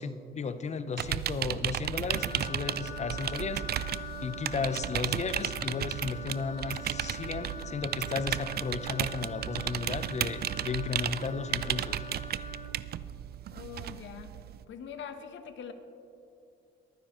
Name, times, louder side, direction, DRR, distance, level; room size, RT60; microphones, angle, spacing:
voice 1, 0.0-12.0, left 5 dB, 35° left, 12 dB, 0.7 m, -35 dB
sound 1, 1.0-14.6, right 11 dB, 55° right, 0.4 m, -34 dB
Wind instrument woodwind instrument, 2.1-12.7, left 1 dB, 85° left, 1.8 m, -43 dB
voice 2, 13.5-14.3 14.7-15.7, left 7 dB, 70° left, 8 dB, 1.1 m, -43 dB
22.5 x 9.6 x 3.1 m, 2.6 s
cardioid pair, 90°, 20 cm